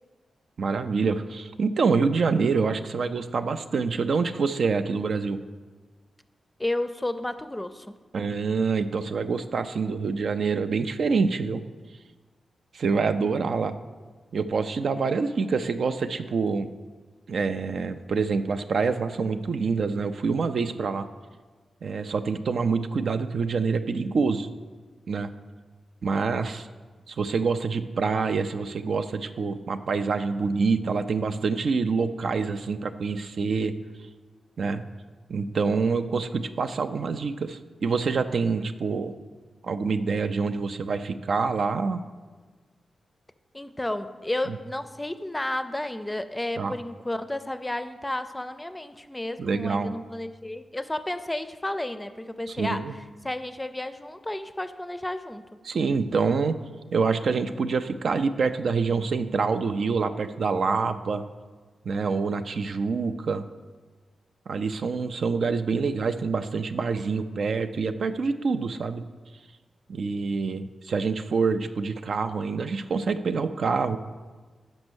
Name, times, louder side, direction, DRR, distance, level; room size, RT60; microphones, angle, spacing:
voice 1, 0.6-5.4 8.1-11.6 12.7-13.7 14.3-16.7 17.3-21.1 21.8-24.5 25.1-25.3 26.0-26.7 27.1-33.7 34.6-34.8 35.3-39.1 39.6-42.0 44.5-44.6 46.6-46.7 49.4-49.9 52.5-52.9 55.6-56.5 56.9-61.2 61.9-63.4 64.5-69.0 69.9-74.0, right 4 dB, 70° right, 9 dB, 0.3 m, -26 dB
voice 2, 6.6-8.0 43.5-52.8 53.2-55.4, left 1 dB, 15° left, 10 dB, 0.4 m, -32 dB
5.3 x 5.3 x 6.1 m, 1.4 s
supercardioid pair, 45°, 0 cm